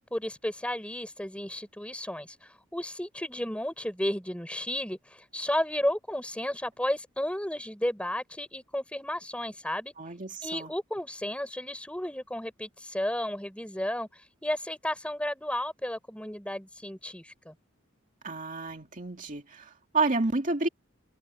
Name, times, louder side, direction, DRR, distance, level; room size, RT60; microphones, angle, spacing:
voice 1, 0.1-9.9 10.4-17.5, left 1 dB, 5° left, 5.7 m, -33 dB
voice 2, 10.0-10.7 18.2-20.7, right 3 dB, 40° right, 2.4 m, -30 dB
head